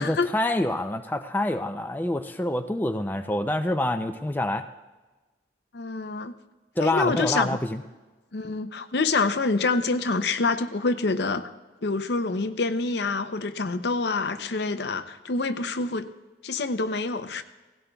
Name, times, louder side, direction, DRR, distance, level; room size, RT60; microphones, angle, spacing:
voice 1, 0.0-4.6 6.8-7.8, left 1 dB, 10° left, 6 dB, 0.4 m, -26 dB
voice 2, 5.7-6.3 6.8-7.6 8.3-11.5 11.8-16.1 16.4-17.4, left 3 dB, 70° left, 10 dB, 0.6 m, -26 dB
17.5 x 16.5 x 2.3 m, 1.2 s
head